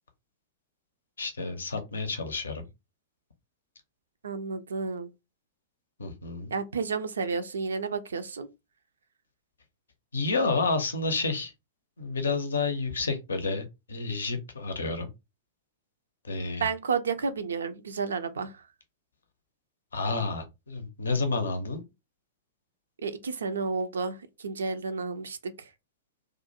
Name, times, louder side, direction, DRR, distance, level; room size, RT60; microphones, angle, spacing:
voice 1, 1.2-2.7 6.0-6.5 10.1-11.5 12.0-15.1 16.2-16.6 19.9-21.8, left 3 dB, 75° left, 0.5 m, -30 dB
voice 2, 4.2-5.1 6.5-8.5 16.6-18.6 23.0-25.7, right 5 dB, 70° right, 0.3 m, -31 dB
2.4 x 2.1 x 2.7 m
figure-of-eight pair, 100°, 0 cm